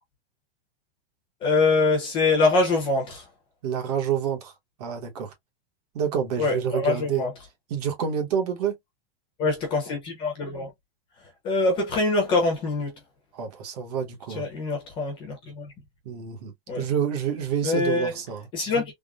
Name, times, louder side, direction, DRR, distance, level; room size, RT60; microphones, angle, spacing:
voice 1, 1.4-3.2 6.4-7.3 9.4-10.7 11.4-12.9 14.4-15.7 16.7-16.8 17.6-18.1 18.5-18.8, left 3 dB, 15° left, 0.7 m, -24 dB
voice 2, 3.6-4.5 4.8-5.3 5.9-7.3 7.7-8.8 13.3-14.5 16.0-18.5, right 8 dB, 40° right, 0.9 m, -28 dB
3.6 x 2.0 x 2.3 m
supercardioid pair, 175°, 30 cm